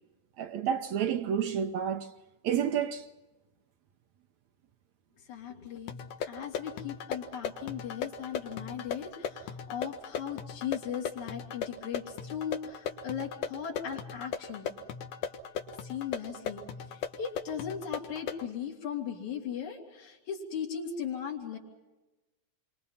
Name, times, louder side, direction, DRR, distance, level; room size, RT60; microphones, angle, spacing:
voice 1, 0.4-2.1 2.4-3.1, right 8 dB, 70° right, 2.1 m, -30 dB
voice 2, 5.3-6.0 6.3-14.7 15.8-16.6 16.9-21.6, left 8 dB, 70° left, 4.4 m, -38 dB
sound 1, 5.9-18.5, left 7 dB, 90° left, 3.0 m, -38 dB
29.0 x 24.0 x 5.6 m
omnidirectional pair, 3.5 m